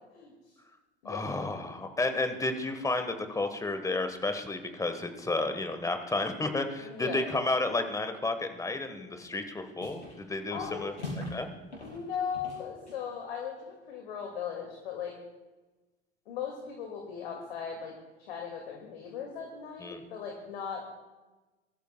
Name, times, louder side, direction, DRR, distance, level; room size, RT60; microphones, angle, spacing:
voice 1, 1.0-10.9 11.3-11.5 19.8-20.0, left 2 dB, 10° left, 8 dB, 1.4 m, -32 dB
voice 2, 6.8-7.3 10.5-11.1 11.8-15.2 16.3-17.9 18.3-20.9, left 7 dB, 60° left, 1 dB, 2.3 m, -38 dB
sound 1, 9.2-9.5 9.8-10.2 10.5-11.5 11.7-13.1, left 1 dB, 80° left, 5.0 m, -42 dB
22.5 x 13.5 x 2.3 m, 1.2 s
figure-of-eight pair, 75°, 34 cm